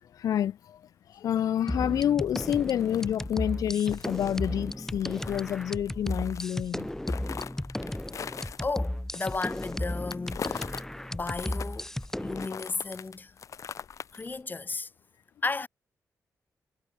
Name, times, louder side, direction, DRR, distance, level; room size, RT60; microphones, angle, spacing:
voice 1, 0.2-0.5 1.2-6.9, left 10 dB, 80° left, 0.8 m, -28 dB
sound 1, 1.7-12.5, left 1 dB, 5° left, 1.0 m, -34 dB
sound 2, 2.0-10.8 11.2-14.4, left 7 dB, 65° left, 5.5 m, -41 dB
voice 2, 8.4-10.7 11.1-11.9 12.2-13.3 14.1-14.9 15.4-15.7, left 3 dB, 30° left, 3.5 m, -34 dB
cardioid pair, 80°, 6 cm